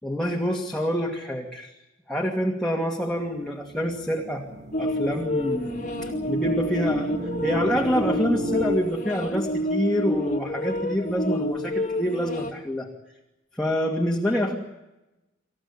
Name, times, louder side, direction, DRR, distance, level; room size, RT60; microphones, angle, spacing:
voice 1, 0.0-1.7 2.1-4.4 4.8-7.1 7.4-12.9 13.6-14.6, equal, 5° left, -1 dB, 2.4 m, -27 dB
sound 1, 3.2-8.8, right 1 dB, 40° right, 1.8 m, -34 dB
sound 2, 4.7-12.5, left 1 dB, 40° left, 2.2 m, -28 dB
27.0 x 15.0 x 9.9 m, 1.0 s
head